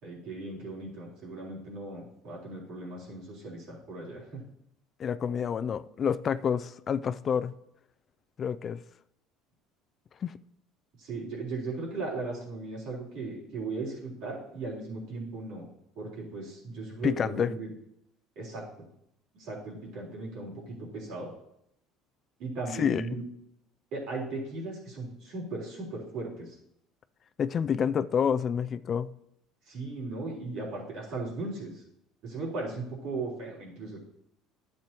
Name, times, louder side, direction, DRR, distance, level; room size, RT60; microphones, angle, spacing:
voice 1, 0.0-4.4 11.0-15.7 16.0-17.7 18.4-18.9 19.3-21.3 22.4-23.2 23.9-26.6 29.7-31.8 32.2-34.0, right 3 dB, 70° right, 3.9 m, -37 dB
voice 2, 5.0-7.5 8.4-8.8 10.2-10.3 17.0-17.5 22.8-23.0 27.4-29.1, left 7 dB, 40° left, 0.3 m, -28 dB
11.0 x 7.6 x 2.9 m
supercardioid pair, 85°, 0 cm